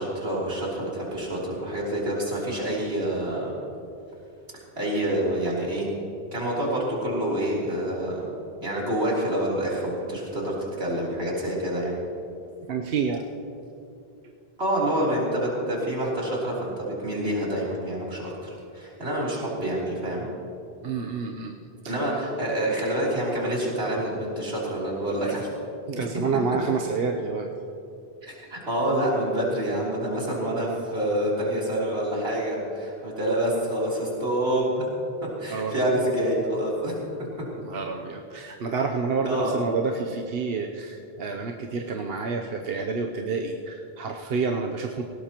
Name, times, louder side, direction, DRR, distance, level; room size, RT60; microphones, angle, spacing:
voice 1, 0.0-3.5 4.5-5.9 6.3-8.3 8.6-12.0 14.6-20.3 21.9-25.5 26.0-26.2 28.2-34.9 35.2-37.5 39.2-39.8, right 1 dB, 90° right, -6 dB, 3.8 m, -27 dB
voice 2, 12.7-13.3 20.8-21.5 21.8-22.0 25.9-27.5 35.5-35.8 37.6-45.0, right 4 dB, 70° right, 2 dB, 1.0 m, -28 dB
18.5 x 17.5 x 3.0 m, 2.8 s
omnidirectional pair, 1.0 m